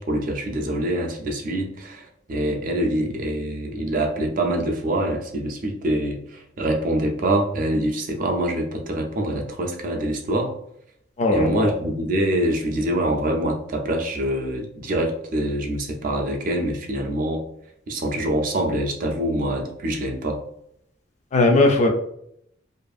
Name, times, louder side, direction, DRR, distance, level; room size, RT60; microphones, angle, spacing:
voice 1, 0.0-10.5 11.3-17.4 17.9-20.4, right 1 dB, 45° right, 2 dB, 0.4 m, -25 dB
voice 2, 11.2-11.7 21.3-21.9, left 2 dB, 35° left, 3 dB, 0.3 m, -18 dB
2.5 x 2.4 x 2.4 m, 0.73 s
head